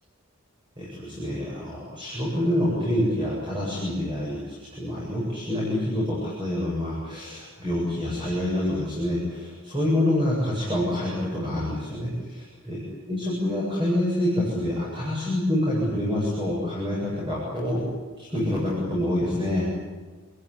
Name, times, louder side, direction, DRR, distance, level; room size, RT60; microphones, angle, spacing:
voice 1, 0.8-12.8 13.1-17.8 18.2-19.7, left 1 dB, 20° right, -5 dB, 8.0 m, -27 dB
29.0 x 18.5 x 9.9 m, 1.4 s
head